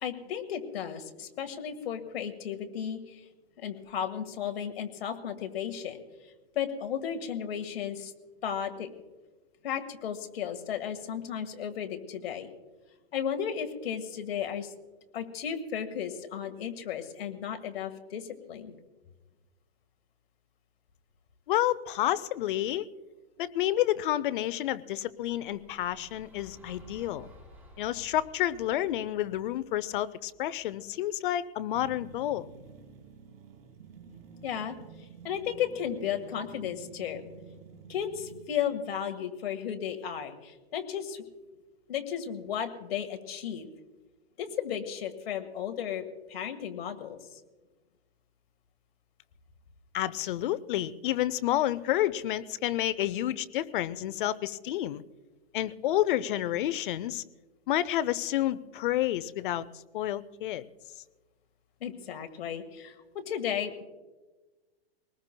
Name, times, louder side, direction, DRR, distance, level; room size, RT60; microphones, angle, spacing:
voice 1, 0.0-3.3 3.6-6.0 6.5-8.1 8.4-8.9 9.6-12.5 13.1-14.7 15.1-18.8 34.4-37.2 37.9-41.2 41.9-43.7 44.4-47.4 61.8-63.8, left 8 dB, 70° left, 6 dB, 1.7 m, -34 dB
voice 2, 21.5-22.9 23.4-27.3 27.8-32.5 49.9-55.0 55.5-57.2 57.7-59.7 59.9-60.6, left 13 dB, 55° left, 16 dB, 0.6 m, -29 dB
sound 1, 25.1-31.3, equal, 5° right, 4.4 m, -55 dB
sound 2, 31.7-38.5, right 6 dB, 65° right, 2.3 m, -50 dB
23.0 x 19.5 x 2.2 m, 1.2 s
hypercardioid pair, 150°, 31 cm